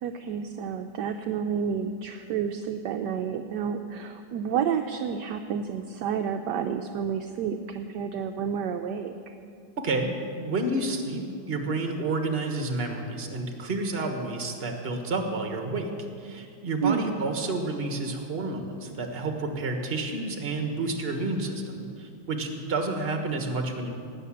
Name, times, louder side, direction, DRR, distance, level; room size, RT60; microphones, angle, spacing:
voice 1, 0.0-9.1 16.8-17.1, right 7 dB, 70° right, 6 dB, 1.1 m, -30 dB
voice 2, 9.8-15.9 16.2-23.9, right 2 dB, 35° right, 4 dB, 1.4 m, -30 dB
18.0 x 6.8 x 8.6 m, 2.4 s
omnidirectional pair, 2.1 m